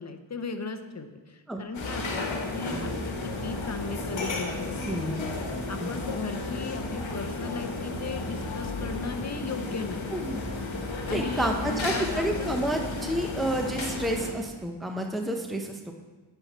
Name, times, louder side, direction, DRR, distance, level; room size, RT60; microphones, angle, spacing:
voice 1, 0.0-5.3 5.7-10.1 11.1-12.6, left 4 dB, 35° left, 7 dB, 0.7 m, -37 dB
sound 1, 1.7-14.3, left 2 dB, 70° left, 1.2 m, -33 dB
voice 2, 4.8-5.2 5.8-5.9 10.1-10.5 11.1-15.9, right 1 dB, ahead, 3 dB, 0.7 m, -30 dB
9.8 x 4.5 x 5.5 m, 1.3 s
wide cardioid pair, 85°, 47 cm